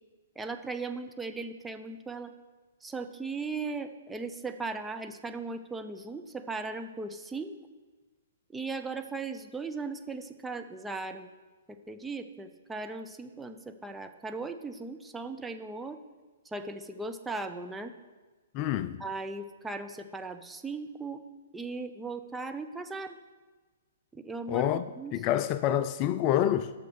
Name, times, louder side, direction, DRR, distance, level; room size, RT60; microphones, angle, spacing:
voice 1, 0.4-2.3 2.8-7.6 8.5-11.3 11.7-16.0 16.4-17.9 19.0-21.2 21.5-23.2 24.1-25.1, right 3 dB, 10° right, 0.6 m, -38 dB
voice 2, 18.5-19.0 24.5-24.9 25.1-26.7, left 11 dB, 35° left, 0.4 m, -27 dB
8.3 x 6.5 x 6.3 m
hypercardioid pair, 125°, 0 cm